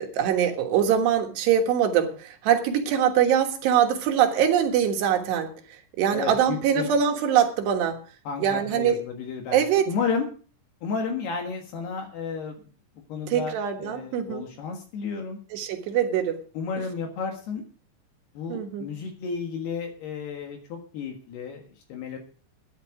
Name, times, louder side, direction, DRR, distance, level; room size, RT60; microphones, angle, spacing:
voice 1, 0.0-5.5 6.0-8.0 8.4-9.0 9.5-9.9 13.3-14.5 15.5-16.4 18.5-18.9, right 9 dB, 70° right, 5 dB, 3.4 m, -23 dB
voice 2, 6.1-6.9 8.2-10.3 10.8-12.7 13.1-15.4 16.5-17.6 18.3-22.2, left 5 dB, 65° left, 3 dB, 3.4 m, -32 dB
13.0 x 10.5 x 4.9 m, 0.39 s
omnidirectional pair, 5.3 m